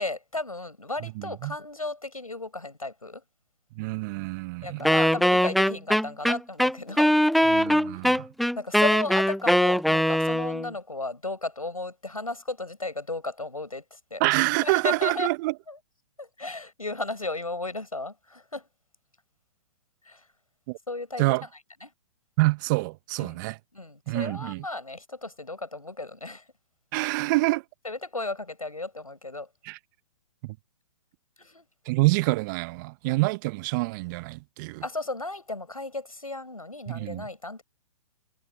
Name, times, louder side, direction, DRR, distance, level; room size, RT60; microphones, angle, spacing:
voice 1, 0.0-3.2 4.6-7.1 8.6-14.2 14.6-15.3 15.7-15.8 16.2-18.6 20.0-20.2 20.9-21.2 21.8-21.9 23.2-23.4 23.7-26.4 27.8-29.5 31.4-31.7 34.8-37.6, left 2 dB, 90° left, 6.2 m, -34 dB
voice 2, 1.0-1.5 3.8-4.9 7.5-8.3 14.2-15.5 20.7-20.8 21.2-21.4 22.4-23.6 24.1-24.6 26.9-27.6 29.6-29.8 30.4-30.6 31.9-34.8 36.9-37.2, right 23 dB, 35° right, 1.3 m, -26 dB
Wind instrument woodwind instrument, 4.8-10.7, equal, ahead, 0.8 m, -21 dB
figure-of-eight pair, 120°, 18 cm